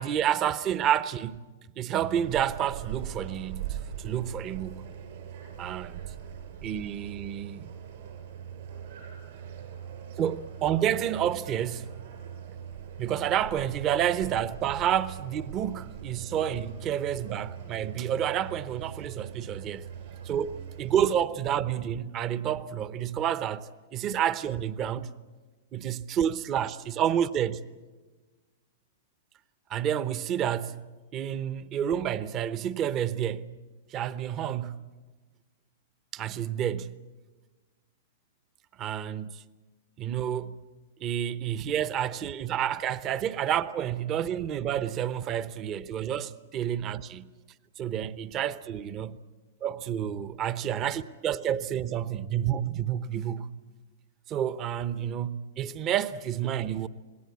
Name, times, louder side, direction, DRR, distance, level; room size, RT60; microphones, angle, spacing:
voice 1, 0.0-1.4 1.8-4.9 5.6-6.0 6.6-7.7 10.2-11.9 13.0-19.9 20.2-25.1 25.7-27.6 29.7-30.9 31.1-33.5 33.9-34.8 36.1-37.0 38.8-39.4 40.0-40.5 41.0-47.3 47.8-49.2 49.6-53.6 54.3-56.9, right 10 dB, 30° right, 0.9 m, -29 dB
sound 1, 1.9-21.1, right 9 dB, 65° right, 6.0 m, -41 dB
27.0 x 19.5 x 8.5 m
hypercardioid pair, 135°, 0 cm